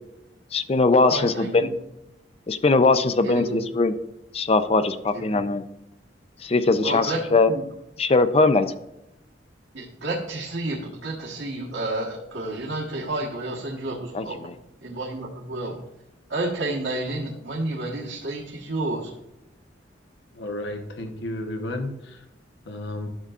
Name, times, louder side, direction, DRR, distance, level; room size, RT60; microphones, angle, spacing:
voice 1, 0.5-1.7 2.5-3.9 4.3-5.6 6.4-7.1 7.3-7.5 8.0-8.7 14.1-14.2, left 3 dB, 35° left, 11 dB, 0.4 m, -20 dB
voice 2, 1.1-1.7 3.2-3.6 5.1-5.4 6.8-7.6 9.7-14.5 14.8-15.7 16.3-19.1, right 2 dB, 75° right, -4 dB, 1.4 m, -30 dB
voice 3, 20.4-22.2 22.7-23.1, left 1 dB, 70° left, 4 dB, 1.0 m, -32 dB
11.5 x 6.7 x 2.5 m, 0.87 s
head